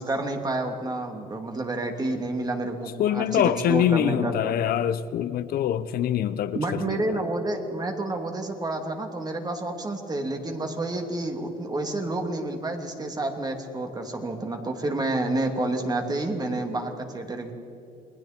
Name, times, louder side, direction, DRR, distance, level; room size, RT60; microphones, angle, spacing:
voice 1, 0.0-4.5 6.5-17.5, right 2 dB, 25° right, 2.8 m, -29 dB
voice 2, 3.0-7.2, left 10 dB, 65° left, 0.7 m, -24 dB
28.5 x 20.5 x 4.5 m
cardioid pair, 110°, 17 cm